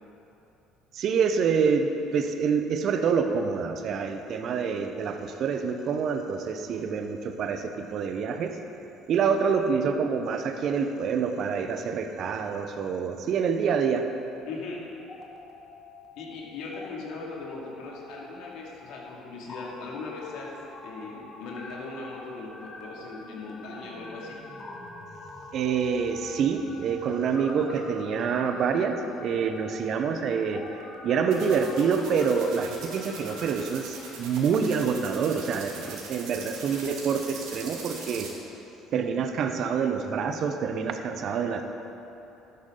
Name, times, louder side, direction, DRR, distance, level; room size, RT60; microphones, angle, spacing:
voice 1, 0.9-8.6 9.1-14.1 25.5-38.3 38.9-41.6, right 6 dB, 55° right, 7 dB, 0.9 m, -27 dB
voice 2, 14.5-14.8 16.2-20.5 20.8-24.4, left 3 dB, 70° left, -3 dB, 2.5 m, -39 dB
sound 1, 14.9-16.3 16.6-16.9 17.4-33.4, left 2 dB, 35° left, 1.9 m, -45 dB
sound 2, 31.3-38.3, right 5 dB, 70° right, 2.4 m, -41 dB
13.0 x 11.0 x 3.9 m, 3.0 s
hypercardioid pair, 65°, 0 cm